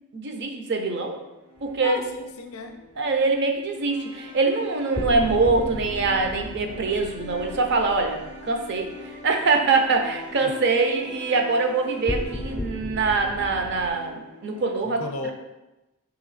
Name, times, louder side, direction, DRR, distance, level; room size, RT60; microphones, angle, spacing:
voice 1, 0.1-1.2 1.6-2.0 3.0-8.2 8.4-8.9 9.2-15.0, right 3 dB, 50° right, 4 dB, 0.5 m, -23 dB
sound 1, 0.7-14.6, left 1 dB, 90° right, 0.8 m, -44 dB
sound 2, 1.6-2.1 4.9-9.2 12.1-13.9, left 1 dB, 10° left, 0.3 m, -35 dB
voice 2, 1.8-2.7 10.4-10.5 14.8-15.3, left 3 dB, 70° left, 5 dB, 0.5 m, -33 dB
3.4 x 3.0 x 4.0 m, 0.97 s
head